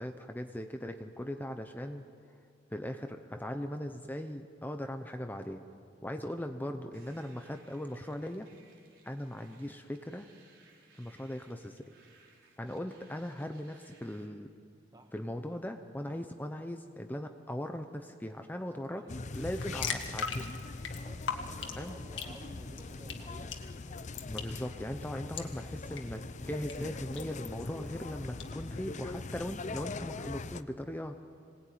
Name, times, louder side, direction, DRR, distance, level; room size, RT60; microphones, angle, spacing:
voice 1, 0.0-2.0 2.7-5.7 6.0-8.5 9.0-10.3 11.0-11.9 12.6-14.5 15.1-19.1 19.3-20.5 21.8-22.0 24.2-31.1, left 1 dB, 10° left, 6 dB, 0.8 m, -39 dB
sound 1, 6.9-14.2, right 4 dB, 85° right, 4.3 m, -63 dB
voice 2, 18.6-19.3 19.6-20.1 21.0-23.6, right 1 dB, 20° right, 4 dB, 1.5 m, -54 dB
sound 2, 19.1-30.6, left 3 dB, 40° left, 0.6 m, -41 dB
sound 3, 19.3-28.5, left 6 dB, 75° left, 1.9 m, -43 dB
26.0 x 19.0 x 9.4 m, 2.3 s
head